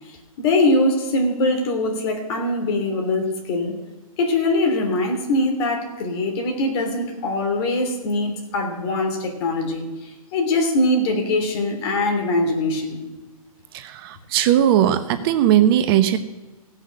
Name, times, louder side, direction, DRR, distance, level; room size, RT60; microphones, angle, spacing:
voice 1, 0.4-3.8 4.2-13.0, left 2 dB, 45° left, 3 dB, 3.0 m, -22 dB
voice 2, 13.7-16.2, right 11 dB, 40° right, 10 dB, 0.9 m, -18 dB
17.0 x 6.5 x 6.3 m, 1.2 s
hypercardioid pair, 125°, 18 cm